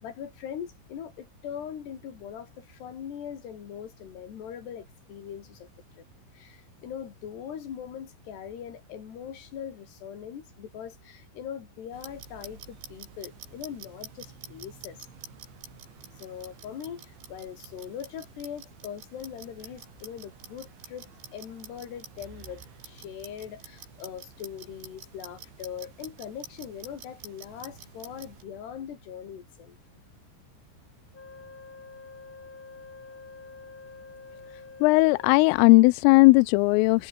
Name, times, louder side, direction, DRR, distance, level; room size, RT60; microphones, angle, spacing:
voice 1, 0.0-5.7 5.9-6.0 6.3-15.0 16.1-29.8, left 8 dB, 60° left, 5.0 m, -41 dB
Clock, 11.9-28.4, right 7 dB, 65° right, 7.4 m, -48 dB
Wind instrument woodwind instrument, 31.1-35.7, left 4 dB, 25° left, 2.3 m, -47 dB
voice 2, 34.8-37.1, left 24 dB, 90° left, 3.2 m, -18 dB
omnidirectional pair, 5.8 m